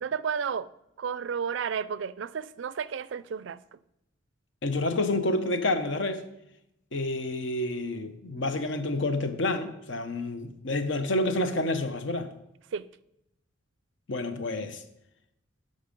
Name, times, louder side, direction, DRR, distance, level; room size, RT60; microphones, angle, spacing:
voice 1, 0.0-0.7 1.0-3.8 12.7-12.9, right 6 dB, 65° right, 0.4 m, -32 dB
voice 2, 4.6-6.2 6.9-12.3 14.1-14.8, left 2 dB, 65° left, 0.9 m, -29 dB
12.5 x 5.4 x 5.2 m
head